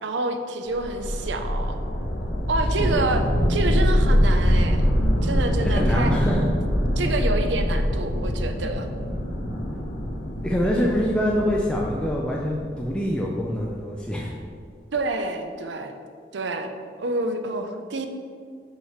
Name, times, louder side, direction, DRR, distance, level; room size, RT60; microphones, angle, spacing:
voice 1, 0.0-1.8 2.5-3.2 3.5-4.9 5.2-6.1 7.0-8.9 14.9-15.9 16.3-16.7 17.0-18.1, right 2 dB, 80° right, 7 dB, 0.6 m, -28 dB
sound 1, 0.7-13.8, equal, 85° left, 1.2 m, -24 dB
voice 2, 5.6-6.4 10.4-14.3, equal, 5° left, -3 dB, 0.5 m, -25 dB
5.7 x 4.9 x 5.7 m, 2.1 s
head